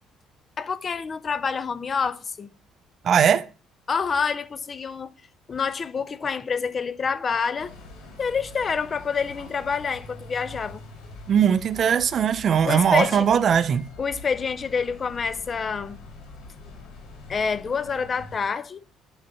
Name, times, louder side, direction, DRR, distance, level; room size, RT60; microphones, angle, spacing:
voice 1, 0.6-2.5 3.9-5.1 5.5-7.7 8.2-10.8 12.6-13.3 14.0-16.0 17.3-18.8, left 5 dB, 35° left, 0.5 m, -27 dB
voice 2, 3.0-3.5 11.3-13.9, right 8 dB, 50° right, 0.4 m, -20 dB
sound 1, 7.6-18.4, left 2 dB, 85° left, 3.3 m, -44 dB
8.8 x 3.9 x 4.2 m
cardioid pair, 110°, 0 cm